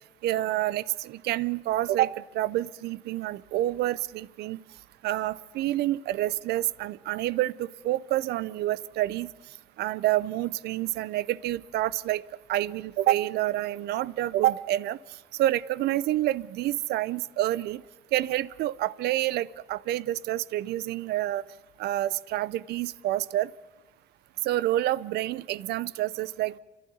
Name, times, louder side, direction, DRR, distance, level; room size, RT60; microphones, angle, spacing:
voice 1, 0.2-4.6 5.0-9.3 9.8-12.2 12.5-15.0 15.3-17.8 18.1-21.4 21.8-23.5 24.4-26.6, right 14 dB, 75° right, 20 dB, 0.6 m, -28 dB
28.5 x 12.0 x 9.4 m, 1.2 s
cardioid pair, 110°, 17 cm